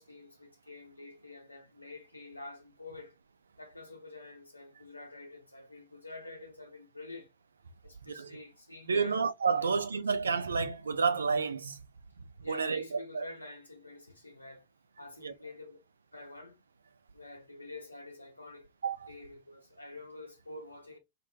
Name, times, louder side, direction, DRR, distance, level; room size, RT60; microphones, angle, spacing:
voice 1, 0.0-3.2 3.6-7.3 7.8-9.2 9.6-9.7 12.4-14.6 15.0-15.8 16.1-16.6 17.1-18.7 19.1-21.0, left 2 dB, 85° left, 0.8 m, -48 dB
voice 2, 8.9-11.8 12.2-13.3 15.2-15.3 18.8-19.1, right 5 dB, 75° right, 0.5 m, -30 dB
4.1 x 2.1 x 2.6 m
figure-of-eight pair, 90°, 0 cm